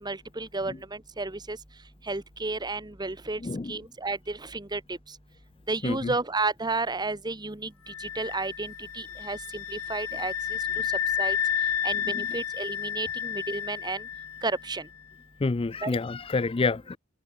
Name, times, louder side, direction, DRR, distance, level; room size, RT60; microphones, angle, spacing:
voice 1, 0.0-1.6 2.1-3.4 3.7-5.0 5.7-7.7 8.0-10.6 11.2-11.4 11.8-14.0 14.4-14.9 15.8-16.0, right 3 dB, 20° right, 1.4 m, -32 dB
voice 2, 3.4-3.7 5.8-6.1 12.1-12.3 15.4-17.0, left 3 dB, 25° left, 0.4 m, -28 dB
sound 1, 7.9-14.7, left 9 dB, 90° left, 1.2 m, -31 dB
open air
head